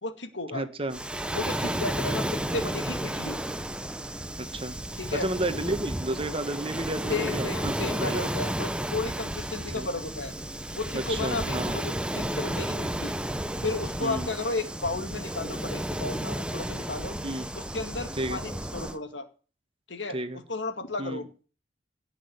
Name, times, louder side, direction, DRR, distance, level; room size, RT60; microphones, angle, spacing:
voice 1, 0.0-0.7 1.3-3.4 5.0-5.3 7.1-10.3 10.7-13.1 13.6-17.2 17.6-19.3 19.9-20.2 20.5-21.3, left 3 dB, 75° left, 8 dB, 2.2 m, -33 dB
voice 2, 0.5-1.0 4.4-4.8 5.1-8.3 9.7-9.9 10.9-11.8 14.0-14.3 17.2-17.5 18.2-18.4 20.1-20.4 21.0-21.2, right 1 dB, 30° right, 10 dB, 1.5 m, -32 dB
Waves surf, 0.9-19.0, right 1 dB, 5° right, 1.0 m, -32 dB
18.0 x 6.4 x 9.5 m, 0.39 s
head